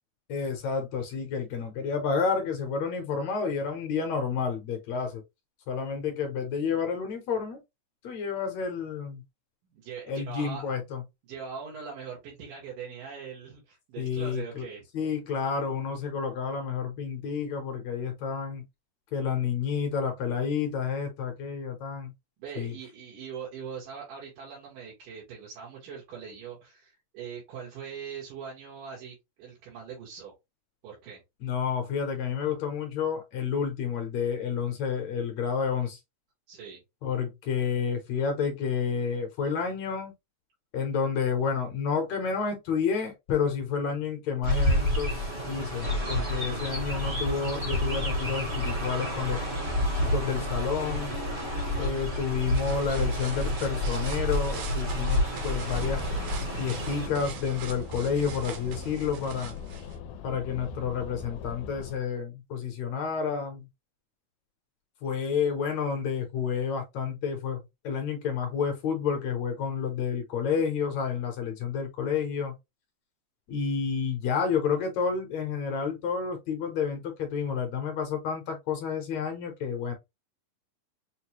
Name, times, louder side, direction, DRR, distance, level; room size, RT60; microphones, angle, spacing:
voice 1, 0.3-5.2 5.7-7.6 8.0-9.2 10.1-11.0 14.0-14.7 14.9-18.6 19.1-22.1 22.6-22.7 31.4-36.0 37.0-40.1 40.7-49.4 49.9-51.1 51.8-56.0 56.6-59.5 60.2-63.7 65.0-72.6 73.5-79.9, left 6 dB, 70° left, 1.9 m, -30 dB
voice 2, 9.7-10.7 11.2-14.8 22.4-30.3 30.8-31.2 36.5-36.8, right 6 dB, 85° right, 3.3 m, -41 dB
Chirp tweet, 44.4-57.1, left 1 dB, 45° right, 0.8 m, -29 dB
sound 1, 52.2-60.0, right 7 dB, 70° right, 1.7 m, -42 dB
sound 2, 55.7-62.0, left 6 dB, 90° left, 2.2 m, -41 dB
6.5 x 2.2 x 2.9 m
omnidirectional pair, 3.6 m